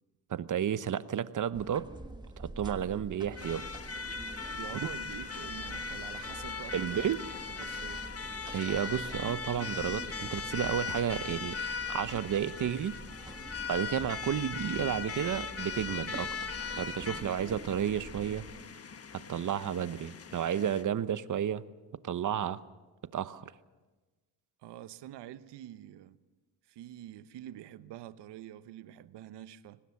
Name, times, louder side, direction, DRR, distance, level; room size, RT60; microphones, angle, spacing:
voice 1, 0.3-1.9 2.4-3.8 6.7-7.2 8.5-11.6 11.9-13.0 13.7-16.3 16.8-18.4 19.3-21.6 22.0-22.6 23.1-23.5, right 9 dB, 45° right, 1.0 m, -32 dB
sound 1, 1.5-18.6, right 2 dB, 10° right, 1.4 m, -47 dB
sound 2, 3.4-20.8, left 5 dB, 35° left, 1.4 m, -39 dB
voice 2, 4.5-8.1 24.6-26.2 26.7-29.8, right 12 dB, 70° right, 1.1 m, -46 dB
25.0 x 19.0 x 7.2 m
cardioid pair, 95°, 42 cm